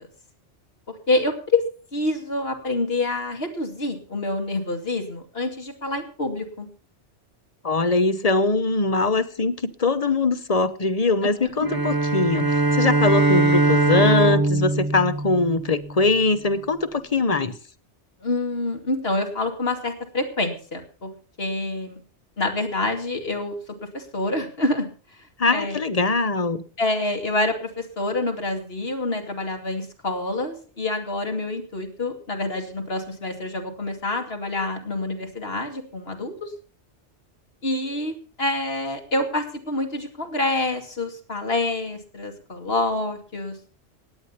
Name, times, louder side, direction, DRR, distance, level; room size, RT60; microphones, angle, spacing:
voice 1, 1.1-1.6 1.9-6.7 11.2-11.5 18.2-21.1 21.4-22.0 22.4-23.6 23.9-24.9 25.5-25.8 26.8-36.5 37.6-43.6, left 2 dB, 55° left, 4 dB, 2.7 m, -27 dB
voice 2, 7.6-17.6 25.4-26.6, left 3 dB, 35° left, 14 dB, 0.9 m, -22 dB
sound 1, 11.6-16.1, right 2 dB, 20° right, 0.8 m, -21 dB
17.0 x 9.9 x 5.7 m, 0.39 s
omnidirectional pair, 1.2 m